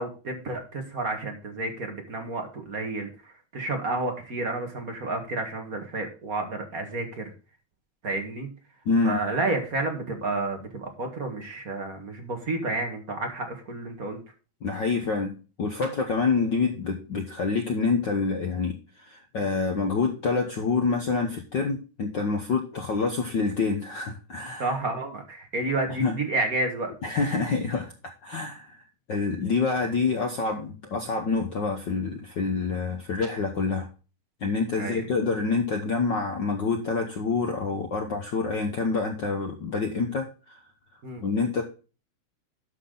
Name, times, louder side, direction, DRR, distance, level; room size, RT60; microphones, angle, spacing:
voice 1, 0.0-7.3 8.0-8.5 9.0-14.2 24.6-26.9 34.8-35.0 41.0-41.2, right 2 dB, 35° right, 4 dB, 1.6 m, -30 dB
voice 2, 8.8-9.2 14.6-24.7 26.0-26.1 27.0-27.9 28.2-28.8 29.1-33.9 34.4-40.6 41.2-41.6, left 4 dB, 70° left, 4 dB, 1.0 m, -27 dB
11.5 x 5.8 x 3.9 m, 0.34 s
omnidirectional pair, 3.5 m